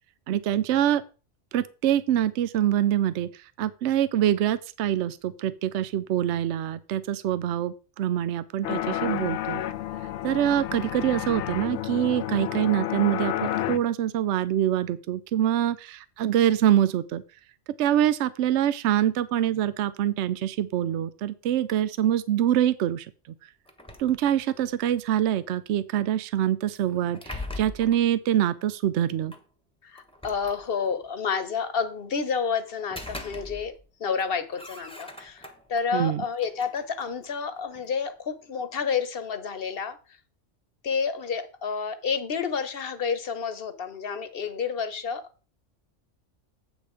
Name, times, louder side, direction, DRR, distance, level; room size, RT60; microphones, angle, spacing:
voice 1, 0.3-1.0 1.5-3.3 3.6-9.6 10.2-17.2 17.8-23.1 24.0-29.3 35.9-36.2, right 11 dB, 70° right, 15 dB, 0.8 m, -25 dB
sound 1, 8.6-13.8, left 12 dB, 70° left, 0.8 m, -30 dB
sound 2, 23.7-24.8 26.8-28.1 29.3-29.4 30.0-31.1 32.7-33.9 34.2-35.8 36.3-37.9, left 2 dB, 5° left, 1.0 m, -42 dB
voice 2, 29.8-33.7 34.0-40.0 40.8-45.2, left 6 dB, 55° left, 12 dB, 1.1 m, -30 dB
8.1 x 6.3 x 4.9 m, 0.34 s
omnidirectional pair, 1.3 m